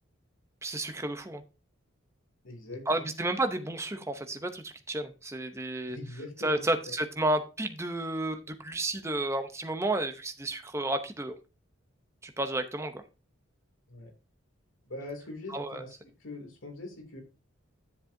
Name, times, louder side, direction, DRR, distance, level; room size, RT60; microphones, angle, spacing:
voice 1, 0.6-1.4 2.9-6.0 6.4-11.4 12.2-13.0 15.5-15.8, right 1 dB, 15° right, 7 dB, 0.7 m, -31 dB
voice 2, 2.4-3.1 5.9-7.0 13.9-14.1 14.8-17.2, left 2 dB, 85° left, 3 dB, 2.7 m, -42 dB
10.5 x 7.2 x 2.7 m, 0.31 s
head